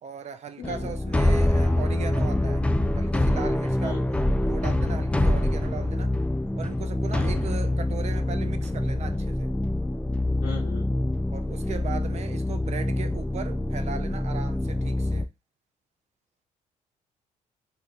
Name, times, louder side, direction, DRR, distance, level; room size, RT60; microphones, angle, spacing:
voice 1, 0.0-2.6 3.0-6.1 6.6-9.5 11.3-15.3, right 7 dB, 50° right, 0.6 m, -38 dB
voice 2, 0.6-0.9 3.8-4.0 7.1-7.4 10.4-10.8, left 7 dB, 90° left, 1.1 m, -38 dB
sound 1, 0.6-15.2, left 1 dB, 10° left, 0.3 m, -25 dB
3.5 x 2.8 x 2.4 m
cardioid pair, 75°, 15 cm